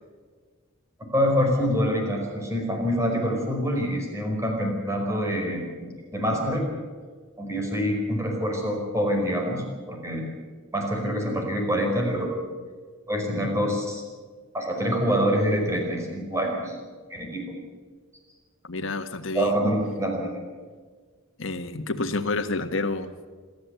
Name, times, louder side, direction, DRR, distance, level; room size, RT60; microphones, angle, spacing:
voice 1, 1.0-6.7 7.4-10.3 10.7-12.3 13.1-14.0 14.5-16.8 17.1-17.6 19.3-20.4, equal, 15° right, 1 dB, 4.9 m, -26 dB
voice 2, 18.6-19.6 21.4-23.1, left 3 dB, 70° left, 8 dB, 1.6 m, -29 dB
27.0 x 13.5 x 8.3 m, 1.6 s
head